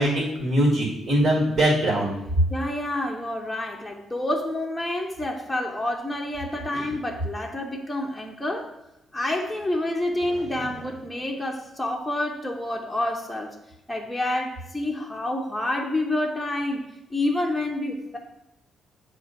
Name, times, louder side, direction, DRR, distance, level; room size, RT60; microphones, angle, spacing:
voice 1, 0.0-2.1 6.7-6.9, right 1 dB, 60° right, -2 dB, 1.8 m, -22 dB
voice 2, 2.5-8.7 9.1-13.6 13.9-18.2, left 1 dB, 5° left, -1 dB, 0.7 m, -28 dB
7.2 x 2.5 x 5.5 m, 0.91 s
cardioid pair, 90°, 0 cm